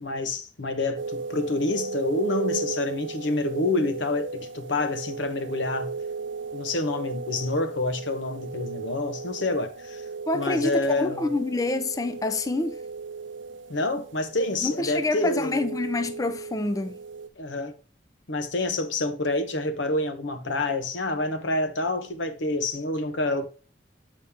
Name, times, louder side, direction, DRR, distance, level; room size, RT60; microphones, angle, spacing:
voice 1, 0.0-5.9 6.5-10.0 10.3-11.3 13.7-15.7 17.4-17.7 18.3-23.5, left 2 dB, 85° left, 1.0 m, -28 dB
sound 1, 1.0-17.3, right 4 dB, 90° right, 0.5 m, -36 dB
voice 2, 10.3-12.8 14.6-17.0, left 2 dB, 20° left, 0.4 m, -27 dB
7.0 x 5.2 x 3.5 m
head